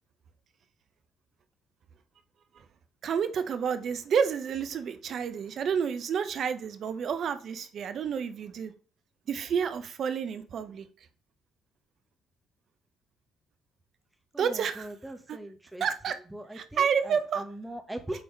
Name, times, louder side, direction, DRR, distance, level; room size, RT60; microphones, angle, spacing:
voice 1, 3.0-8.7 9.3-10.9 14.4-14.9 15.3-15.4 15.8-16.2 16.5-17.4, right 7 dB, 60° right, 10 dB, 0.8 m, -30 dB
voice 2, 14.3-15.8 16.3-18.2, right 1 dB, 10° right, 6 dB, 1.4 m, -40 dB
8.9 x 3.9 x 3.3 m, 0.38 s
hypercardioid pair, 50°, 0 cm